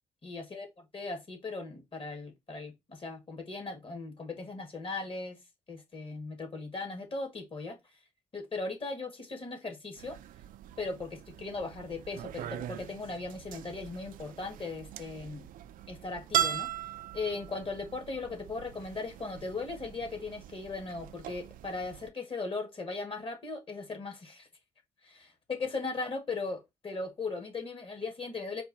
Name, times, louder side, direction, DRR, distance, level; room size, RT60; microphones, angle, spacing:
voice 1, 0.2-0.7 0.9-5.4 5.7-7.8 8.3-10.2 10.8-15.5 15.9-16.7 17.1-24.5 25.0-28.6, left 3 dB, 40° left, 1.8 m, -38 dB
sound 1, 10.0-22.1, right 11 dB, 80° right, 0.4 m, -39 dB
4.5 x 2.5 x 4.1 m
cardioid pair, 90°, 14 cm